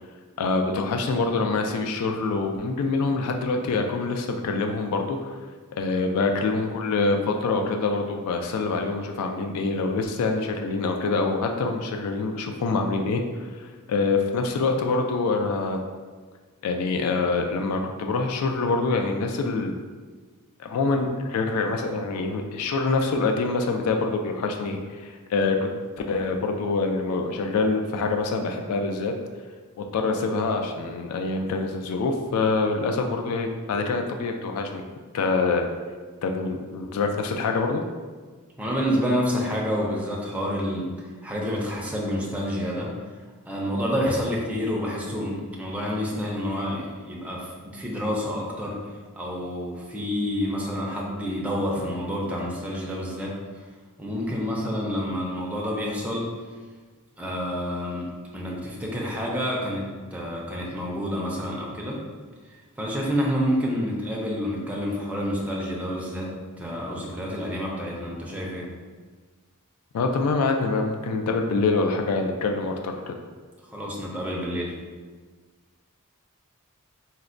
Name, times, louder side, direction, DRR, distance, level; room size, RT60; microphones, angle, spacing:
voice 1, 0.4-5.4 5.8-13.2 13.6-15.8 16.6-19.7 20.6-25.6 26.1-29.1 29.8-34.8 35.1-35.7 36.2-37.8 69.9-73.2, left 3 dB, 80° left, 3 dB, 0.3 m, -25 dB
voice 2, 38.6-40.9 41.2-42.9 43.5-48.8 49.1-53.3 54.0-56.3 57.2-59.9 60.1-62.0 62.8-66.3 66.6-68.6 73.7-74.7, equal, 5° right, -4 dB, 0.4 m, -28 dB
4.2 x 2.1 x 2.5 m, 1.4 s
head